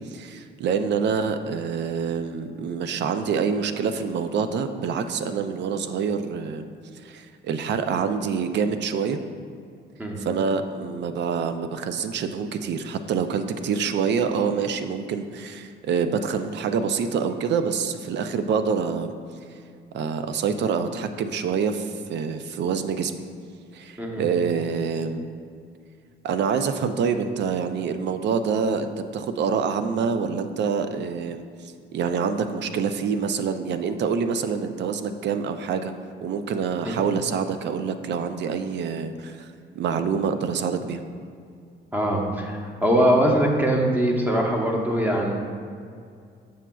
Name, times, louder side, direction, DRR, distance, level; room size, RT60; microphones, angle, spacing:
voice 1, 0.1-6.7 7.0-9.2 10.2-19.2 19.9-23.1 23.7-25.3 26.2-31.4 31.9-35.9 36.2-39.5 39.7-41.0, right 6 dB, 60° right, 9 dB, 0.4 m, -26 dB
voice 2, 41.9-45.3, right 1 dB, 10° right, 0 dB, 0.9 m, -22 dB
7.1 x 6.1 x 2.3 m, 2.3 s
cardioid pair, 90°, 20 cm